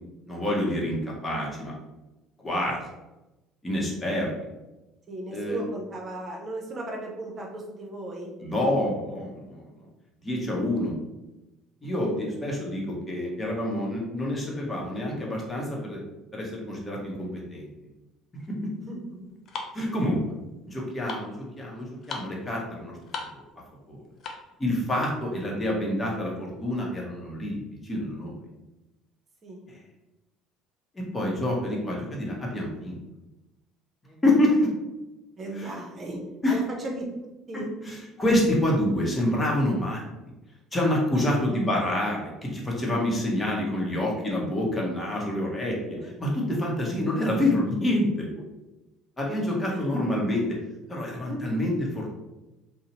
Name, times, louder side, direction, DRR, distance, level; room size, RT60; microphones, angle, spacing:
voice 1, 0.3-1.7 2.4-2.8 3.6-4.3 5.3-5.6 8.4-9.6 10.2-10.9 11.8-16.0 16.3-17.7 18.5-18.7 19.7-20.2 20.7-23.0 23.3-23.4 23.9-24.0 24.6-28.3 29.7-29.8 31.1-33.0 34.2-34.7 35.6-35.7 36.4-36.6 37.5-40.0 40.7-48.3 49.2-50.6 50.9-52.1, left 1 dB, 20° left, -2 dB, 0.9 m, -27 dB
voice 2, 5.1-8.3 12.0-12.3 18.8-19.2 29.4-29.7 34.0-34.2 35.4-36.2 36.5-37.1 37.5-37.7 41.1-41.3 46.0-46.1 51.3-51.4, right 2 dB, 40° right, 0 dB, 0.8 m, -36 dB
sound 1, 18.4-24.6, left 4 dB, 50° left, 0.5 m, -41 dB
2.6 x 2.1 x 2.9 m, 1.0 s
hypercardioid pair, 75°, 0 cm